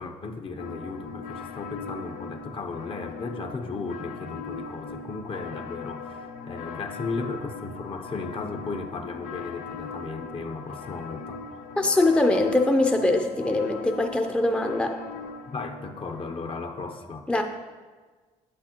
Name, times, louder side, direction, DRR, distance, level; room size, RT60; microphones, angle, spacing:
voice 1, 0.0-11.4 15.5-17.3, left 4 dB, 40° left, 6 dB, 0.8 m, -35 dB
sound 1, 0.6-16.5, left 4 dB, 85° left, 0.5 m, -40 dB
voice 2, 11.8-15.0 17.3-17.4, left 2 dB, 5° left, 4 dB, 0.6 m, -22 dB
8.5 x 7.6 x 2.9 m, 1.4 s
supercardioid pair, 65°, 14 cm